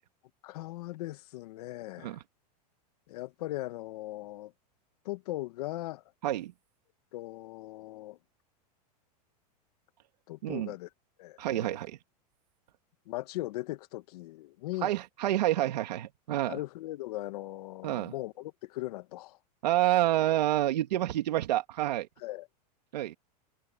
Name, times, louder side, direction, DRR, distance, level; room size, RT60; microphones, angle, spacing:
voice 1, 0.4-2.2 3.1-4.5 5.0-6.0 7.1-8.2 10.3-10.9 11.2-11.8 13.1-14.9 16.5-19.4 22.2-22.5, left 17 dB, 70° left, 1.3 m, -39 dB
voice 2, 10.4-10.7 11.4-12.0 14.8-16.6 17.8-18.1 19.6-22.1 22.9-23.1, right 14 dB, 85° right, 2.5 m, -28 dB
supercardioid pair, 145°, 21 cm